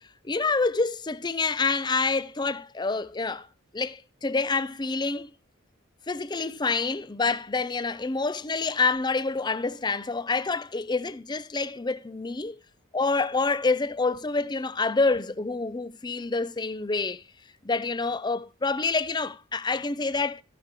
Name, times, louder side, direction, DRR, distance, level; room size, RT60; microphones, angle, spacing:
voice 1, 0.2-3.5 3.7-5.3 6.1-12.6 12.9-17.2 17.6-20.4, left 3 dB, 20° left, 0.5 m, -27 dB
13.5 x 6.6 x 4.9 m
head